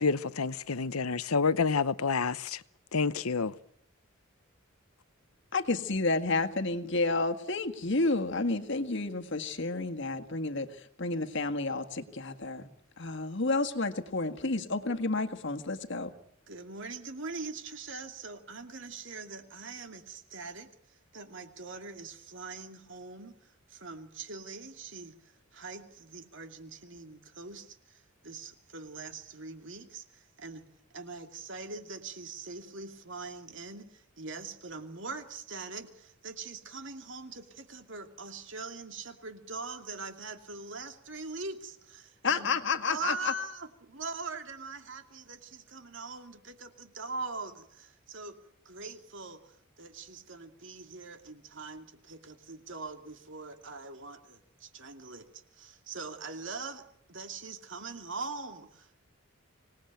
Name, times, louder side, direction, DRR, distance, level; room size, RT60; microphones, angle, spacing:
voice 1, 0.0-2.6 2.9-3.5, left 4 dB, 90° left, 0.9 m, -28 dB
voice 2, 5.5-12.7 13.0-16.1 42.2-43.3, left 3 dB, 55° left, 1.8 m, -30 dB
voice 3, 16.5-30.6 30.9-42.5 42.8-48.4 48.6-59.1, right 3 dB, 60° right, 2.7 m, -42 dB
26.0 x 19.0 x 9.2 m
head